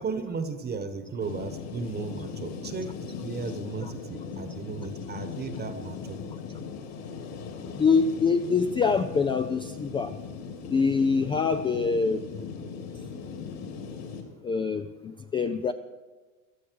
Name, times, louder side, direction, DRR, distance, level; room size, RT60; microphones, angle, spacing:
voice 1, 0.0-6.2, right 4 dB, 25° right, 10 dB, 1.2 m, -35 dB
sound 1, 1.2-14.2, left 5 dB, 55° left, 2.9 m, -39 dB
voice 2, 7.8-10.1 10.7-12.5 14.4-15.7, left 5 dB, 15° left, 8 dB, 0.4 m, -25 dB
16.5 x 12.5 x 4.6 m, 1.3 s
hypercardioid pair, 100°, 41 cm